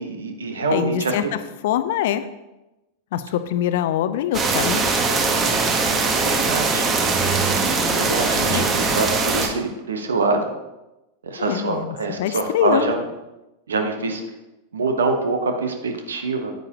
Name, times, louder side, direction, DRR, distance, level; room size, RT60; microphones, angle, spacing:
voice 1, 0.0-1.1 6.2-6.9 7.9-10.5 11.2-13.0 13.7-14.2 14.7-16.5, right 3 dB, 70° right, 5 dB, 1.2 m, -24 dB
voice 2, 0.7-2.3 3.1-5.0 8.5-8.7 11.4-13.0, left 11 dB, 55° left, 12 dB, 0.6 m, -24 dB
sound 1, 4.3-9.5, right 4 dB, 25° right, 1.3 m, -21 dB
9.5 x 9.1 x 3.0 m, 0.99 s
figure-of-eight pair, 90°, 0 cm